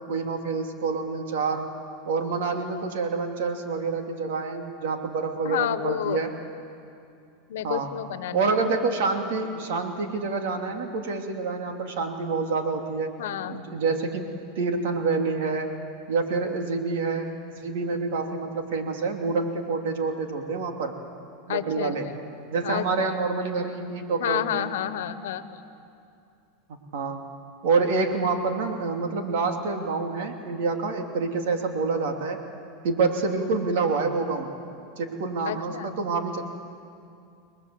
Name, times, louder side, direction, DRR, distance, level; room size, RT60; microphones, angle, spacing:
voice 1, 0.1-1.7 2.0-6.3 7.6-7.9 8.3-13.1 13.5-15.7 16.1-21.0 21.5-22.1 22.5-24.7 26.9-27.2 27.6-32.4 32.8-34.5 35.0-36.4, right 4 dB, 75° right, 4 dB, 3.0 m, -27 dB
voice 2, 5.4-6.2 7.5-8.5 13.2-13.6 21.5-22.2 22.6-23.2 24.2-25.5 35.4-36.0, left 11 dB, 85° left, 12 dB, 1.2 m, -30 dB
29.5 x 21.0 x 7.8 m, 2.5 s
supercardioid pair, 140°, 0 cm